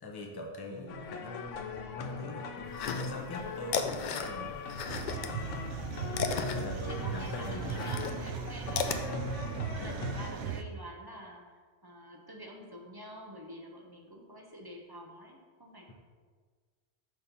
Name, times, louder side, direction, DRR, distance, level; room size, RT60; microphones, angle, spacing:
voice 1, 0.0-4.6 6.5-7.9 9.8-10.0, left 2 dB, 25° left, 1 dB, 0.7 m, -42 dB
voice 2, 0.7-1.1 6.6-15.9, right 1 dB, 25° right, 0 dB, 0.7 m, -48 dB
sound 1, 0.9-10.3, left 5 dB, 80° left, 0.9 m, -41 dB
sound 2, 2.7-3.4 3.6-5.3 5.6-9.0, left 6 dB, 60° left, 0.5 m, -35 dB
sound 3, 4.9-10.6, right 6 dB, 75° right, 0.8 m, -37 dB
6.2 x 4.3 x 5.3 m, 1.5 s
omnidirectional pair, 1.3 m